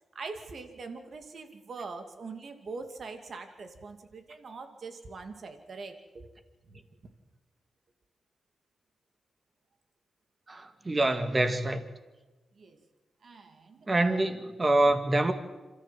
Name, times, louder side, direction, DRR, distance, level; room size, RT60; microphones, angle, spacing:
voice 1, 0.1-6.3 6.6-6.8 12.5-12.8 13.2-14.4, right 4 dB, 60° right, 2.4 m, -43 dB
voice 2, 10.5-11.8 13.9-15.3, right 2 dB, 30° right, 2.0 m, -26 dB
26.5 x 14.0 x 7.6 m
cardioid pair, 75°, 0 cm